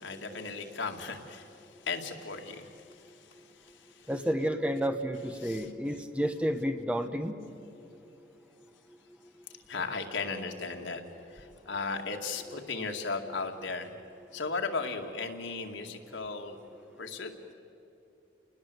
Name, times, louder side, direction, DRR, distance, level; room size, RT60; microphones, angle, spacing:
voice 1, 0.0-4.1 5.4-5.7 9.7-11.0 11.3-13.9 14.3-16.6 17.0-17.5, left 4 dB, 85° left, 3 dB, 2.3 m, -36 dB
voice 2, 4.1-7.4, equal, 5° right, 7 dB, 0.9 m, -30 dB
29.5 x 20.0 x 7.9 m, 2.9 s
head